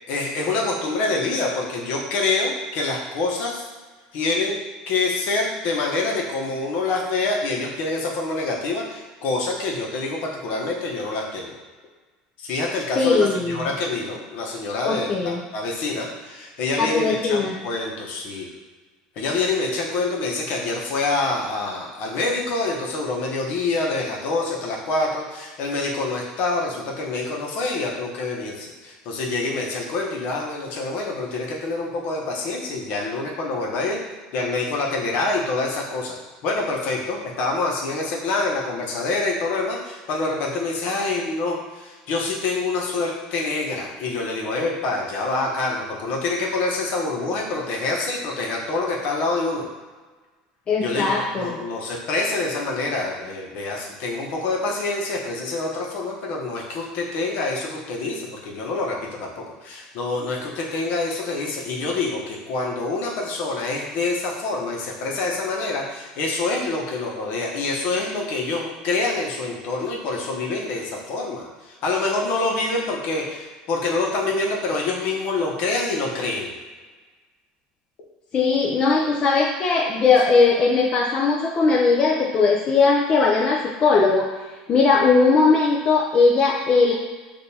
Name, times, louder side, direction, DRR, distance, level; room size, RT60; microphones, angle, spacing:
voice 1, 0.1-3.6 4.1-4.6 4.9-11.6 12.4-18.5 19.2-34.0 34.3-36.1 36.4-49.7 50.8-76.5, left 3 dB, 60° left, -1 dB, 1.0 m, -26 dB
voice 2, 13.0-13.7 14.8-15.4 16.8-17.6 50.7-51.6 78.3-84.3 84.7-86.9, left 4 dB, 35° left, -2 dB, 0.5 m, -19 dB
6.5 x 2.6 x 2.8 m, 1.4 s
supercardioid pair, 120°, 3 cm